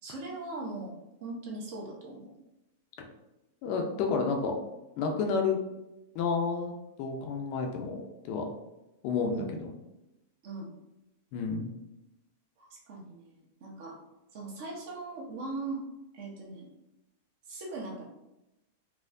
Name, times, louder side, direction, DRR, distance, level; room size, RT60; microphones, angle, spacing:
voice 1, 0.0-2.3 5.4-5.5 9.3-9.6 10.4-10.7 12.6-14.0 14.3-15.8 16.1-16.7 17.5-18.0, right 2 dB, 50° right, -2 dB, 1.0 m, -40 dB
voice 2, 3.6-4.6 5.0-5.6 6.1-6.7 7.0-8.0 8.3-8.5 9.0-9.4 11.3-11.7, left 5 dB, 40° left, 2 dB, 0.5 m, -30 dB
4.1 x 2.1 x 2.6 m, 0.93 s
supercardioid pair, 160°, 0 cm